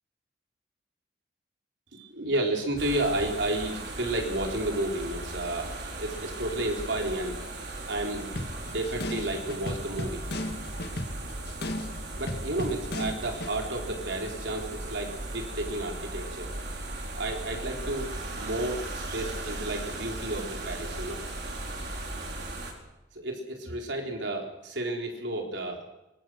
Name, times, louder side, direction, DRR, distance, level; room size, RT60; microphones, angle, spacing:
voice 1, 1.9-7.4 7.9-8.3 8.6-10.2 12.1-16.5 17.1-21.2 23.1-25.8, right 1 dB, 80° right, 2 dB, 3.9 m, -32 dB
sound 1, 2.8-22.7, right 2 dB, 65° right, 4.7 m, -37 dB
sound 2, 8.4-13.6, left 1 dB, 60° left, 1.9 m, -36 dB
24.5 x 21.0 x 6.4 m, 0.97 s
head